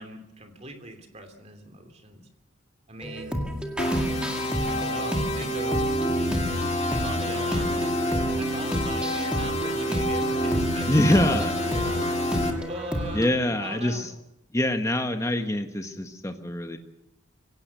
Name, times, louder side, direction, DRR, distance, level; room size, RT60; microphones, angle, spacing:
voice 1, 0.0-2.3 2.9-3.4 4.6-5.9 6.8-7.9 8.4-12.4 12.7-14.1, right 1 dB, 30° right, 6 dB, 2.8 m, -40 dB
sound 1, 3.0-13.3, equal, 5° right, 2.0 m, -31 dB
sound 2, 3.8-12.5, equal, 30° left, 2.2 m, -28 dB
voice 2, 10.9-11.5 13.1-14.1 14.5-16.8, left 1 dB, 15° left, 6 dB, 1.4 m, -24 dB
24.5 x 17.0 x 6.9 m, 0.86 s
head